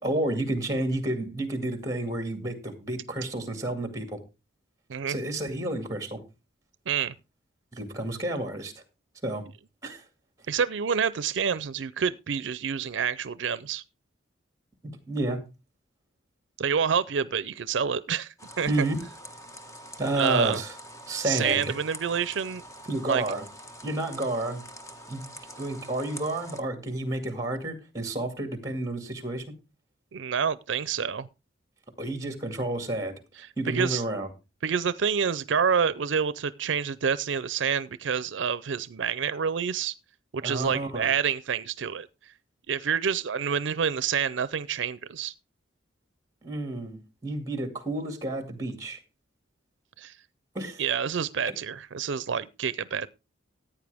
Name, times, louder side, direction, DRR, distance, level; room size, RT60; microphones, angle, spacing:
voice 1, 0.0-4.2 5.1-6.2 7.7-8.7 9.2-9.4 9.8-10.0 14.8-15.4 18.7-19.0 20.0-20.7 21.1-21.7 22.9-23.4 23.8-24.6 25.1-25.3 25.6-29.4 32.0-34.3 40.4-41.1 46.4-49.0 50.5-50.8, right 1 dB, 15° right, 2.2 m, -30 dB
voice 2, 10.5-13.8 16.6-18.9 20.2-20.6 21.2-22.6 23.1-23.2 30.1-31.3 33.7-34.0 34.6-39.9 40.3-42.1 42.7-45.3 50.0-50.1 50.8-53.1, right 7 dB, 75° right, 0.5 m, -28 dB
sound 1, 18.4-26.6, equal, 15° left, 1.1 m, -45 dB
14.5 x 9.0 x 3.4 m
head